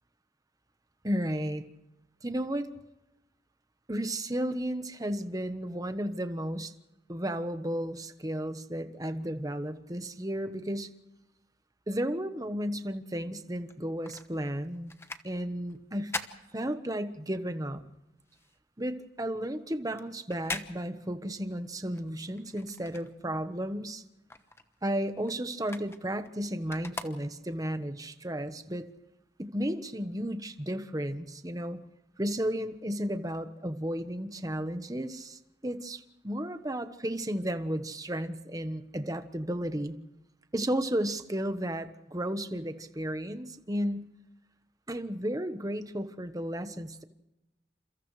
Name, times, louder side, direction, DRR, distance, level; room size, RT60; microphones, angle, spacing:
voice 1, 1.0-1.7 2.2-2.7 3.9-6.7 7.1-10.9 11.9-14.9 15.2-16.1 16.5-17.8 18.8-24.0 24.8-28.9 29.4-31.8 32.2-40.0 40.5-44.1 44.9-47.0, equal, 20° right, 9 dB, 1.2 m, -33 dB
sound 1, 13.6-17.3 17.7-23.6 23.9-27.7 28.3-28.4, left 3 dB, 15° left, 1.1 m, -43 dB
29.5 x 28.0 x 3.3 m, 0.95 s
head